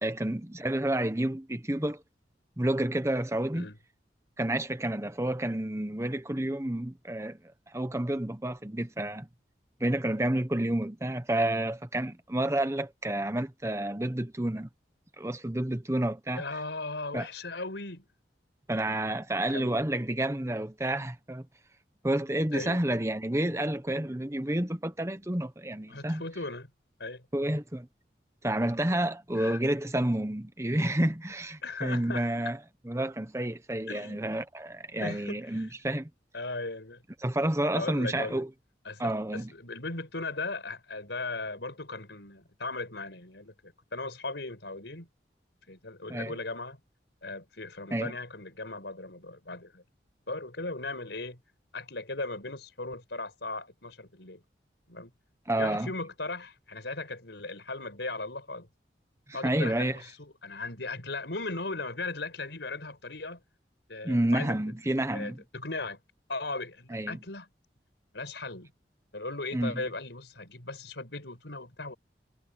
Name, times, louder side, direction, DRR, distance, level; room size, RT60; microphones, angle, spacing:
voice 1, 0.0-2.0 2.6-3.7 4.4-7.4 7.7-9.3 9.8-14.7 15.2-16.4 17.1-17.3 18.7-21.4 22.0-26.2 27.3-27.9 28.4-32.6 32.8-36.1 37.2-38.5 39.0-39.5 46.1-46.4 47.9-48.1 55.5-55.9 59.3-60.0 64.0-65.4 66.9-67.2 69.5-69.8, right 1 dB, 15° right, 1.0 m, -30 dB
voice 2, 16.3-18.1 19.5-19.8 22.5-22.8 25.9-26.7 27.0-27.2 29.3-29.6 31.6-32.5 33.9-34.3 35.0-35.7 36.3-37.0 37.7-38.4 38.8-45.1 45.7-46.8 47.2-49.8 50.3-51.4 51.7-54.4 54.9-55.1 55.6-58.7 59.3-63.4 63.9-64.6 65.1-66.0 66.3-67.5 68.1-68.7 69.1-71.9, left 3 dB, 85° left, 5.0 m, -37 dB
head